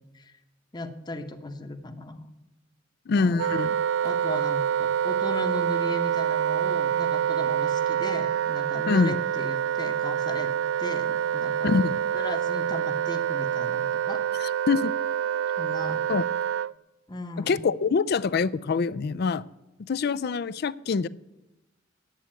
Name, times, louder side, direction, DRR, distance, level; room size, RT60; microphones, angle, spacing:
voice 1, 0.7-2.3 3.1-3.4 4.0-10.5 10.8-11.7 12.1-14.3 15.6-16.1 17.1-17.6, left 2 dB, 20° left, 7 dB, 0.9 m, -36 dB
voice 2, 3.1-3.8 8.9-9.2 11.6-12.0 14.4-14.9 16.1-16.2 17.4-19.4 19.8-21.1, left 4 dB, 50° left, 18 dB, 0.4 m, -25 dB
Wind instrument woodwind instrument, 3.4-16.7, right 9 dB, 70° right, 0.3 m, -26 dB
9.1 x 8.2 x 8.8 m, 0.99 s
head